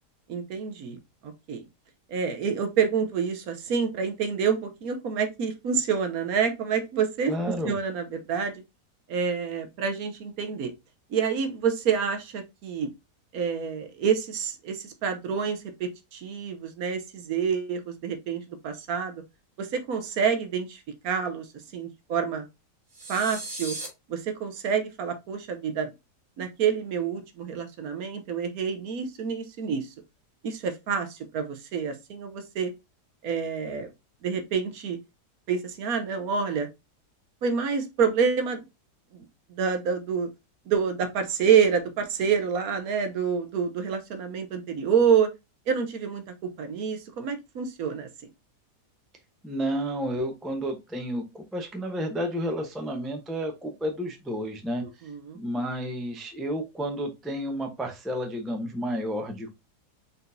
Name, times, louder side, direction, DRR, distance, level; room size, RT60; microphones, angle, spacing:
voice 1, 0.3-1.6 2.1-7.3 7.6-8.6 9.1-10.7 11.1-12.9 13.3-19.2 19.6-21.5 21.7-22.4 23.1-23.8 24.1-25.9 26.4-29.9 30.4-32.7 33.2-33.9 34.2-35.0 35.5-36.7 37.4-38.6 39.6-40.3 40.7-45.3 45.7-46.2 46.6-48.1 54.8-55.4, right 6 dB, 65° right, 1.1 m, -27 dB
voice 2, 7.3-7.7 49.4-54.9 55.3-59.6, equal, ahead, 0.4 m, -31 dB
sound 1, 22.9-23.9, right 2 dB, 45° right, 2.1 m, -36 dB
4.3 x 3.9 x 2.6 m
omnidirectional pair, 1.8 m